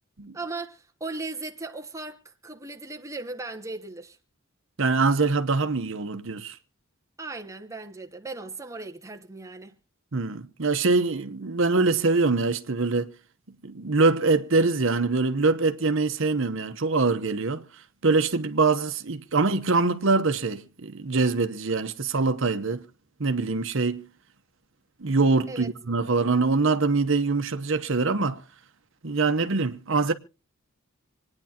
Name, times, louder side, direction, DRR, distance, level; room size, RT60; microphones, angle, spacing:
voice 1, 0.3-4.2 7.2-9.7 25.5-25.7, right 3 dB, 15° right, 1.1 m, -37 dB
voice 2, 4.8-6.6 10.1-13.1 13.6-17.6 18.0-22.8 23.2-24.0 25.0-28.4 29.0-30.1, right 3 dB, 70° right, 1.0 m, -24 dB
26.5 x 9.7 x 2.9 m
head